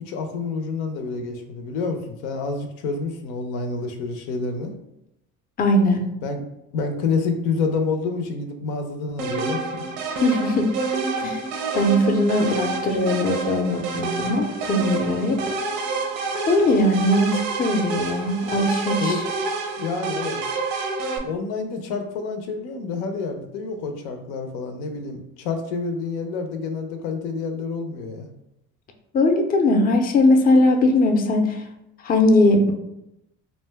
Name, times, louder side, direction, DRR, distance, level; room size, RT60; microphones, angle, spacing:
voice 1, 0.0-4.7 6.2-6.4 6.7-9.9 19.0-19.3 19.8-20.4 21.2-28.3, left 4 dB, 90° left, 6 dB, 0.6 m, -28 dB
voice 2, 5.6-6.0 10.1-10.7 11.2-11.4 11.7-15.4 16.5-19.2 29.1-31.6 32.0-32.7, left 1 dB, 25° left, 5 dB, 0.4 m, -20 dB
sound 1, 9.2-21.2, right 3 dB, 80° right, 0.7 m, -28 dB
2.5 x 2.2 x 3.3 m, 0.85 s
supercardioid pair, 90°, 36 cm